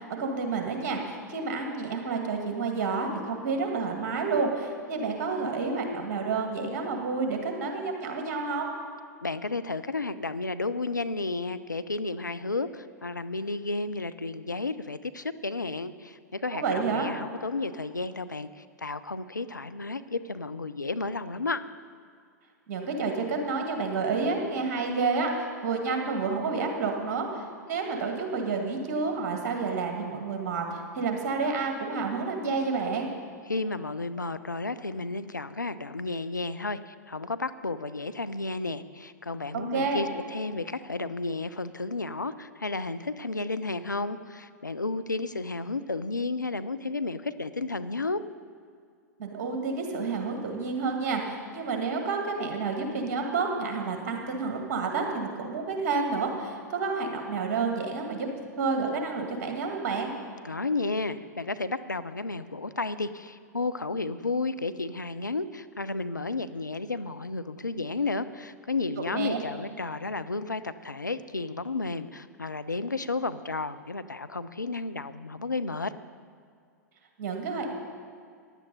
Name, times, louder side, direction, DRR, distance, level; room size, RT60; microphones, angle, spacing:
voice 1, 0.0-8.7 16.5-17.1 22.7-33.1 39.5-40.0 49.2-58.3 58.6-60.1 69.0-69.4 77.2-77.7, right 4 dB, 45° right, 3 dB, 2.1 m, -29 dB
voice 2, 9.2-21.6 33.5-48.2 60.4-75.9, left 3 dB, 85° left, 12 dB, 0.4 m, -32 dB
15.0 x 10.5 x 4.1 m, 2.2 s
figure-of-eight pair, 100°, 10 cm